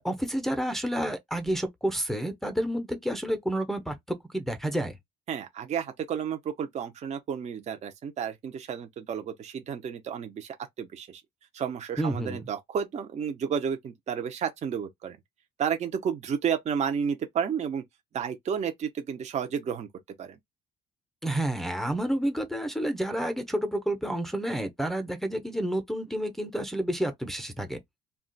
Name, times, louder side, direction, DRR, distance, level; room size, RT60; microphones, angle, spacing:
voice 1, 0.0-5.0 12.0-12.4 21.2-27.8, right 1 dB, ahead, 0.6 m, -30 dB
voice 2, 5.3-11.2 11.5-15.2 15.6-17.8 18.1-19.9 20.2-20.4, right 7 dB, 40° right, 0.6 m, -31 dB
2.4 x 2.2 x 3.8 m
cardioid pair, 110°, 17 cm